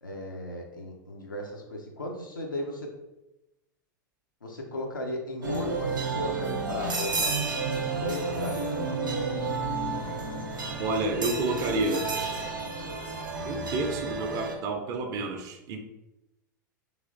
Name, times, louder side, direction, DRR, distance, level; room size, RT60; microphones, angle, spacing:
voice 1, 0.0-2.9 4.4-8.6, left 1 dB, 85° left, 0 dB, 0.5 m, -36 dB
sound 1, 5.4-14.6, right 3 dB, 80° right, 0.6 m, -31 dB
voice 2, 10.8-12.1 13.5-15.8, right 2 dB, 35° right, 4 dB, 0.5 m, -29 dB
3.1 x 3.0 x 2.5 m, 0.95 s
figure-of-eight pair, 90°, 11 cm